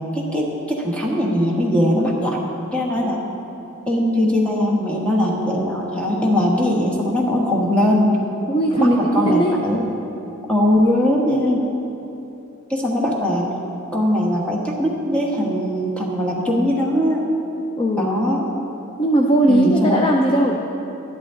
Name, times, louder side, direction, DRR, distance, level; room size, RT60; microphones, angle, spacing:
voice 1, 0.1-2.4 2.7-3.2 3.9-8.2 8.7-9.9 10.5-11.6 12.7-13.5 13.9-17.3 18.0-18.5 19.5-20.0, equal, 5° left, -2 dB, 1.3 m, -20 dB
voice 2, 8.5-9.5 17.8-18.2 19.0-20.6, right 1 dB, 20° left, 0 dB, 0.5 m, -18 dB
13.5 x 11.5 x 3.7 m, 3.0 s
head